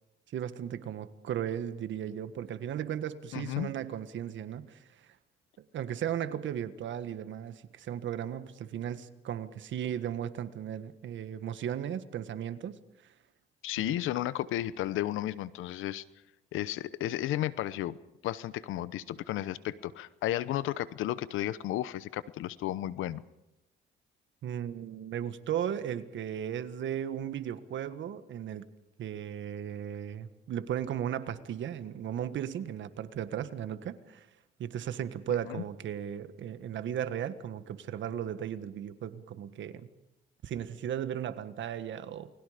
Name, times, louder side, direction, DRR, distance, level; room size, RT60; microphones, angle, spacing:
voice 1, 0.3-5.1 5.7-12.8 13.8-13.9 24.4-28.6 29.0-34.3 34.6-39.9 40.4-42.3, right 9 dB, 70° right, 12 dB, 1.6 m, -36 dB
voice 2, 3.3-3.7 13.6-16.0 16.5-18.0 18.2-23.2 35.6-35.7, left 13 dB, 90° left, 17 dB, 0.9 m, -33 dB
29.5 x 21.5 x 5.1 m, 0.91 s
cardioid pair, 90°, 20 cm